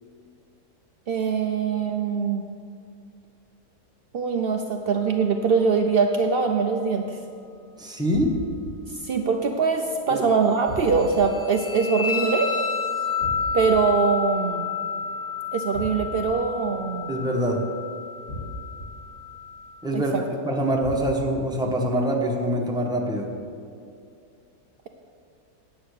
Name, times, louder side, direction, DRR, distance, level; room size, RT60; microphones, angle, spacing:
voice 1, 1.1-2.4 4.1-7.2 8.9-12.5 13.5-14.7 15.5-17.1 19.9-20.2, right 5 dB, 80° right, 4 dB, 0.5 m, -23 dB
voice 2, 7.8-8.4 10.1-10.2 17.1-17.6 19.8-20.1 20.4-23.3, equal, 5° right, 0 dB, 0.9 m, -24 dB
sound 1, 8.1-8.7 10.7-11.3 13.2-13.8 15.7-16.3 18.3-18.9 20.8-21.4, left 1 dB, 35° left, 1.7 m, -35 dB
sound 2, 10.9-19.7, left 5 dB, 70° left, 2.1 m, -30 dB
9.2 x 8.1 x 6.5 m, 2.4 s
omnidirectional pair, 1.7 m